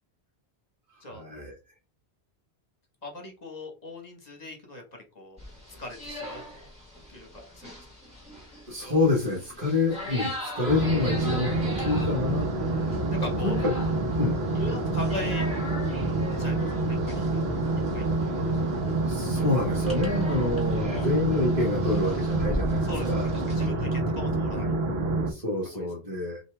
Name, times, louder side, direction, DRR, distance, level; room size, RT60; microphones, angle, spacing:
voice 1, 1.1-1.5 8.7-11.5 11.8-12.9 13.2-13.7 14.2-14.4 18.9-23.3 25.2-26.4, left 3 dB, 35° right, -4 dB, 1.4 m, -28 dB
voice 2, 3.0-4.8 5.1-5.4 5.8-6.4 7.1-7.3 7.5-7.7 12.6-13.6 14.5-15.5 16.4-17.6 17.9-18.6 20.0-20.2 22.8-24.7 25.7-25.9, left 1 dB, 40° left, 3 dB, 1.4 m, -40 dB
sound 1, 5.4-23.7, left 1 dB, 5° right, 2.1 m, -40 dB
sound 2, 10.7-25.3, right 2 dB, 70° right, 1.0 m, -27 dB
5.5 x 2.7 x 3.4 m, 0.30 s
omnidirectional pair, 1.1 m